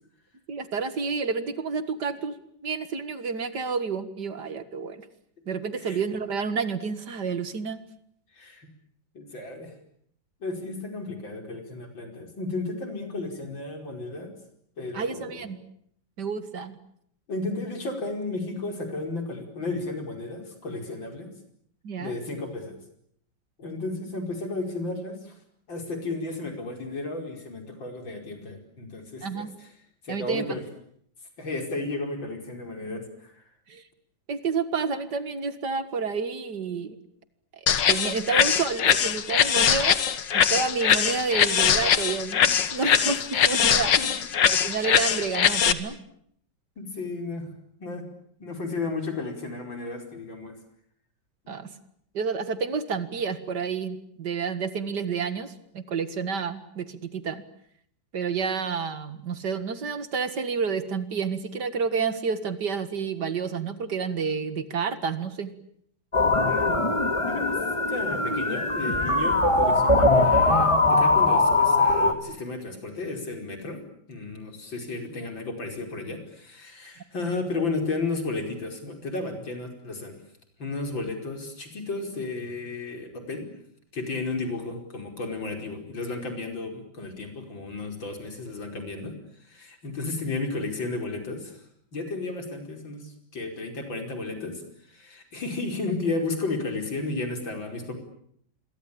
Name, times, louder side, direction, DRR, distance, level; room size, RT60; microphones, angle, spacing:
voice 1, 0.5-5.0 5.5-7.8 14.9-15.6 16.2-16.8 21.8-22.1 29.2-29.5 30.1-30.4 33.7-33.8 34.3-37.0 37.9-40.0 40.3-43.9 44.4-46.0 51.5-51.7 52.1-57.4 58.1-65.5, right 5 dB, 65° right, 12 dB, 2.4 m, -29 dB
voice 2, 8.3-8.7 9.1-9.7 10.4-14.3 14.8-15.5 17.3-21.3 22.0-22.8 23.6-25.4 25.7-29.7 30.0-30.6 31.4-33.4 44.0-44.1 46.8-47.5 47.8-48.0 48.4-50.5 51.5-51.8 66.5-66.8 67.3-67.6 67.9-73.8 74.1-80.2 80.6-83.5 83.9-89.1 89.4-91.6 91.9-94.6 94.9-98.0, left 3 dB, 90° left, 5 dB, 5.8 m, -33 dB
sound 1, 37.7-45.7, left 8 dB, 75° left, 2.0 m, -22 dB
sound 2, 66.1-72.1, left 2 dB, 15° left, 2.1 m, -21 dB
27.5 x 23.0 x 8.6 m, 0.67 s
omnidirectional pair, 2.0 m